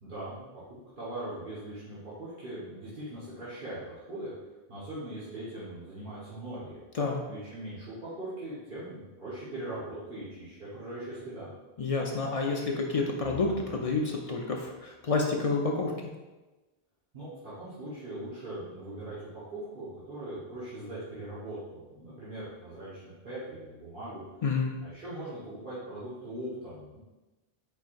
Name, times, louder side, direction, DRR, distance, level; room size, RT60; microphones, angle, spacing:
voice 1, 0.0-4.3 4.7-6.8 7.3-11.5 17.1-24.2 24.8-27.0, right 1 dB, 50° right, -12 dB, 1.4 m, -40 dB
voice 2, 11.8-15.9 24.4-24.7, left 3 dB, 55° left, 0 dB, 0.4 m, -29 dB
4.6 x 4.5 x 2.5 m, 1.1 s
omnidirectional pair, 1.1 m